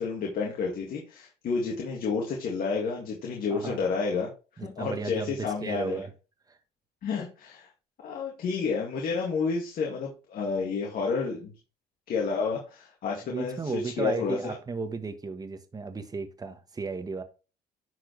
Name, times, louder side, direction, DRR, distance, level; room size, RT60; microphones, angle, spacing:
voice 1, 0.0-4.3 4.6-6.0 7.0-7.7 8.0-11.5 12.1-14.6, left 5 dB, 60° left, 2.1 m, -30 dB
voice 2, 3.5-3.8 4.6-6.1 6.5-6.6 13.3-17.2, right 4 dB, 20° right, 1.2 m, -34 dB
10.5 x 4.7 x 3.2 m
cardioid pair, 110°, 17 cm